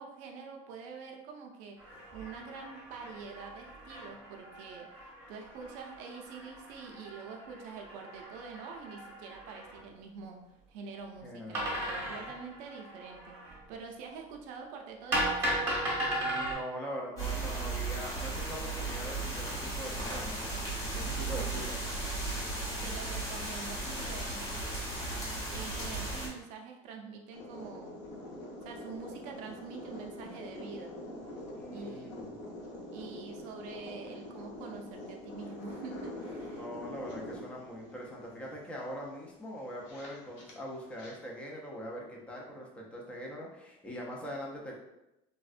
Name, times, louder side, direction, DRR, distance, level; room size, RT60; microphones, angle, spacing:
voice 1, 0.0-10.4 10.7-15.5 22.6-24.4 25.5-28.1 28.6-30.9 31.7-32.2 32.9-36.7, right 5 dB, 55° right, 2 dB, 0.4 m, -46 dB
sound 1, 1.8-9.8 11.5-13.6 15.1-16.5, right 1 dB, 15° right, 0.8 m, -37 dB
voice 2, 11.2-11.8 16.2-20.6 20.9-21.8 31.5-32.4 36.3-44.8, equal, 10° left, -2 dB, 0.3 m, -42 dB
sound 2, 17.2-26.3, right 2 dB, 25° left, 0.8 m, -36 dB
sound 3, 27.3-41.1, left 1 dB, 75° left, 0.7 m, -45 dB
3.3 x 2.1 x 2.4 m, 0.91 s
cardioid pair, 180°, 14 cm